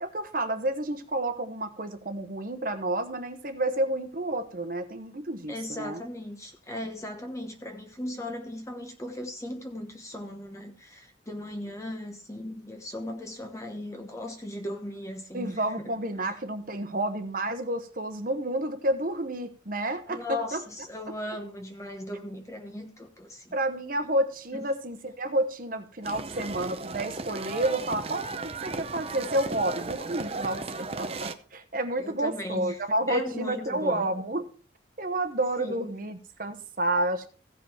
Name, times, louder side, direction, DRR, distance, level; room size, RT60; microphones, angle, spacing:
voice 1, 0.0-6.0 15.3-20.6 23.5-34.5 35.0-37.3, right 1 dB, 45° right, 1.0 m, -30 dB
voice 2, 5.5-15.9 20.1-23.5 24.5-24.6 32.0-32.8 33.1-34.1 35.6-35.9, left 1 dB, 15° left, 1.1 m, -37 dB
sound 1, 26.0-31.3, right 3 dB, 30° right, 0.7 m, -35 dB
16.0 x 5.4 x 4.4 m
head